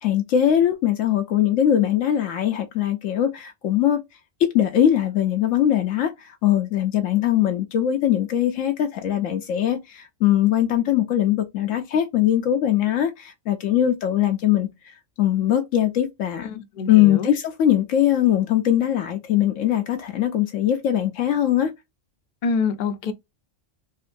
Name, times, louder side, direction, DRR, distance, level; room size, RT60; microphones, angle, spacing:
voice 1, 0.0-4.0 4.4-14.7 15.2-16.6 16.9-21.7, left 11 dB, 80° left, 1.0 m, -21 dB
voice 2, 16.4-17.3 22.4-23.1, left 5 dB, 50° left, 0.6 m, -26 dB
3.7 x 2.5 x 2.5 m
omnidirectional pair, 1.3 m